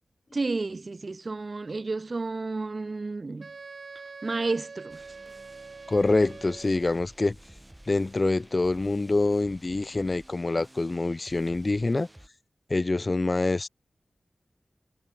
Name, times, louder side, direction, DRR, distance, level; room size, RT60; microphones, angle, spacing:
voice 1, 0.3-3.5 4.2-5.0, right 3 dB, 50° right, 1.4 m, -31 dB
Wind instrument woodwind instrument, 3.4-7.0, right 4 dB, 65° right, 1.5 m, -44 dB
sound 1, 4.9-12.3, right 1 dB, 10° right, 4.2 m, -52 dB
voice 2, 5.9-7.3 7.9-12.1 12.7-13.7, left 2 dB, 40° left, 1.4 m, -25 dB
wide cardioid pair, 75°, 0 cm